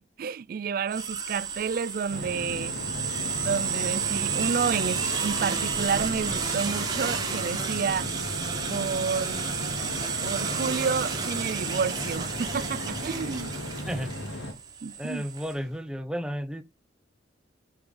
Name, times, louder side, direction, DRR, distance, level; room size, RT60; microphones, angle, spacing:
voice 1, 0.0-2.8 3.4-8.1 8.7-9.5 10.2-13.5 14.8-15.2, right 6 dB, 50° right, 0.3 m, -30 dB
sound 1, 0.9-15.5, right 6 dB, 20° right, 1.2 m, -31 dB
sound 2, 2.1-14.5, left 1 dB, 80° left, 2.1 m, -36 dB
voice 2, 15.0-16.6, equal, 5° right, 0.7 m, -32 dB
6.1 x 4.8 x 5.3 m
head